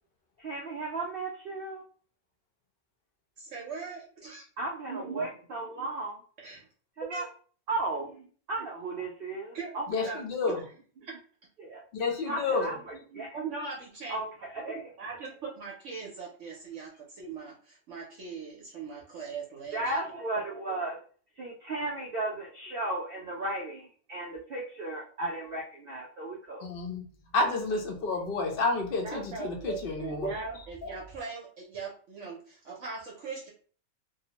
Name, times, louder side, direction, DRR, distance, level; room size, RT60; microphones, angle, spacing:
voice 1, 0.4-1.8 4.6-6.2 7.1-7.2 7.7-10.0 11.6-11.8 12.3-13.4 14.1-14.3 14.5-14.9 19.7-21.0 21.4-26.7, right 2 dB, 80° right, -1 dB, 0.5 m, -35 dB
voice 2, 3.4-4.4 6.4-6.7 7.0-7.3 9.5-9.7 10.0-10.2 11.0-11.1 13.3-14.2 15.0-20.1 29.0-33.5, right 5 dB, 65° right, -3 dB, 0.9 m, -40 dB
voice 3, 9.9-10.6 11.9-12.7 26.7-27.0 27.3-30.3, left 3 dB, 55° left, 2 dB, 0.6 m, -30 dB
2.7 x 2.0 x 2.8 m, 0.43 s
omnidirectional pair, 1.5 m